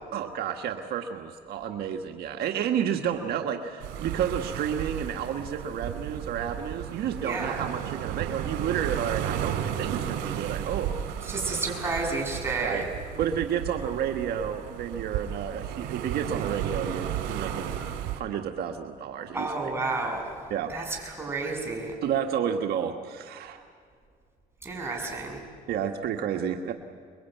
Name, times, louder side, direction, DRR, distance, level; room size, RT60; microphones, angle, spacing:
voice 1, 0.1-11.2 12.6-12.8 13.1-17.8 18.1-19.7 20.5-20.8 22.0-23.6 25.7-26.7, right 8 dB, 70° right, 4 dB, 1.5 m, -31 dB
sound 1, 3.8-18.2, right 10 dB, 90° right, 2.9 m, -34 dB
voice 2, 7.2-7.6 11.3-12.9 19.3-20.2 20.7-21.9 24.6-25.4, right 3 dB, 15° right, -1 dB, 7.5 m, -31 dB
27.0 x 22.5 x 9.2 m, 2.1 s
cardioid pair, 110°, 17 cm